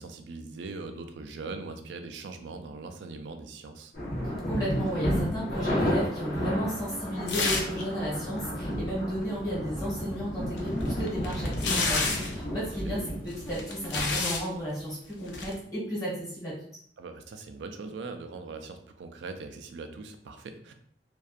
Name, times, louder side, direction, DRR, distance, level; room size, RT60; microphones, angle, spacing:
voice 1, 0.0-3.9 12.7-13.1 17.0-20.7, right 3 dB, 75° right, 7 dB, 0.3 m, -41 dB
sound 1, 3.9-13.6, equal, 55° left, 0.9 m, -32 dB
voice 2, 4.2-16.5, equal, 20° left, -6 dB, 1.3 m, -33 dB
sound 2, 4.4-7.5 7.8-14.5, right 1 dB, ahead, 0.4 m, -48 dB
sound 3, 7.3-7.8 8.1-8.2 10.6-12.4 13.3-14.5 15.3-15.5, left 3 dB, 70° left, 0.5 m, -29 dB
2.6 x 2.2 x 2.4 m, 0.63 s
head